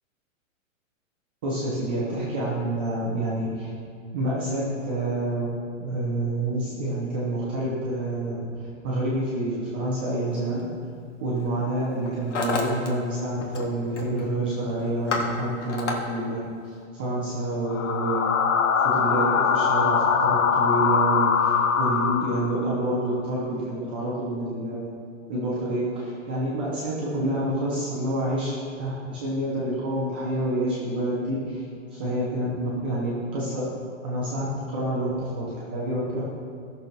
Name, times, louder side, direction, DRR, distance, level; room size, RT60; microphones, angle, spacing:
voice 1, 1.4-3.7 4.1-8.4 8.8-10.7 11.2-16.4 16.6-18.3 18.8-24.9 25.3-31.6 31.9-33.7 34.0-36.2, right 1 dB, 10° right, -9 dB, 0.6 m, -28 dB
Hammer, 10.4-10.6 11.4-11.7 11.9-12.9 13.2-13.7 13.9-14.3 14.7-16.0, left 3 dB, 60° left, 1.8 m, -30 dB
sound 1, 17.7-22.8, left 6 dB, 90° left, 1.0 m, -22 dB
15.5 x 6.7 x 4.4 m, 2.2 s
hypercardioid pair, 180°, 39 cm